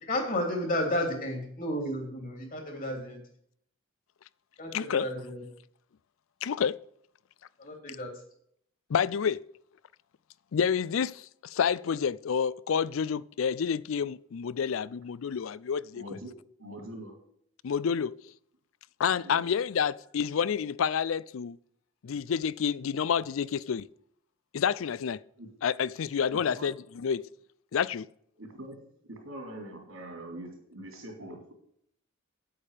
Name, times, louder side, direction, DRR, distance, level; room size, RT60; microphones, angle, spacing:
voice 1, 0.0-3.2 4.6-5.4 7.6-8.1, left 1 dB, 40° left, 3.0 m, -32 dB
voice 2, 4.7-5.1 6.4-6.8 8.9-9.4 10.5-16.0 17.6-18.2 19.0-21.6 22.0-23.9 24.5-25.2 25.6-27.3 27.7-28.1, left 7 dB, 80° left, 0.4 m, -29 dB
voice 3, 15.9-16.3 16.6-17.2 19.2-19.5 25.4-25.5 26.3-26.7 28.4-28.8 29.1-31.5, right 1 dB, 85° right, 3.5 m, -43 dB
9.1 x 8.7 x 5.0 m
head